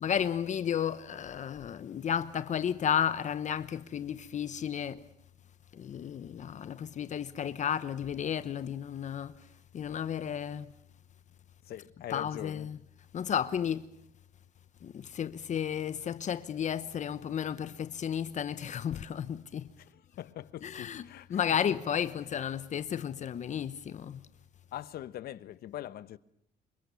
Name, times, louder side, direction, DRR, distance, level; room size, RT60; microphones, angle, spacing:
voice 1, 0.0-5.0 5.7-10.7 12.1-12.8 13.1-14.0 14.8-19.7 20.6-21.0 21.3-24.3, left 8 dB, 45° left, 1.0 m, -33 dB
voice 2, 11.7-12.7 20.2-21.4 24.7-26.2, left 12 dB, 65° left, 1.1 m, -42 dB
27.5 x 24.5 x 7.1 m
cardioid pair, 110°, 17 cm